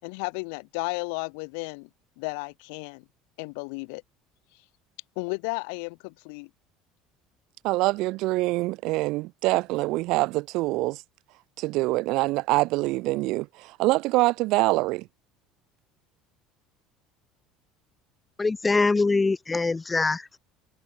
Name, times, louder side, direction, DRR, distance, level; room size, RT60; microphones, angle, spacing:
voice 1, 0.0-1.9 2.2-3.0 3.4-4.0 5.1-6.5, left 35 dB, 80° left, 6.6 m, -33 dB
voice 2, 7.6-11.0 11.6-15.1, right 21 dB, 60° right, 1.8 m, -25 dB
voice 3, 18.4-20.3, left 3 dB, 15° left, 1.8 m, -23 dB
cardioid pair, 150°, 0 cm